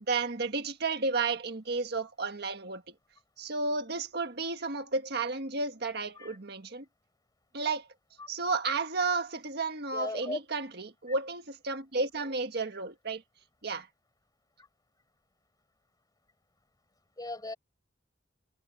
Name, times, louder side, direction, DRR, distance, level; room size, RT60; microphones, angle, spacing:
voice 1, 0.1-2.8 3.4-6.8 7.5-7.9 8.3-13.2 13.6-13.9, right 3 dB, 60° right, 1.7 m, -32 dB
voice 2, 9.9-10.4 17.2-17.6, left 2 dB, 20° left, 4.9 m, -37 dB
head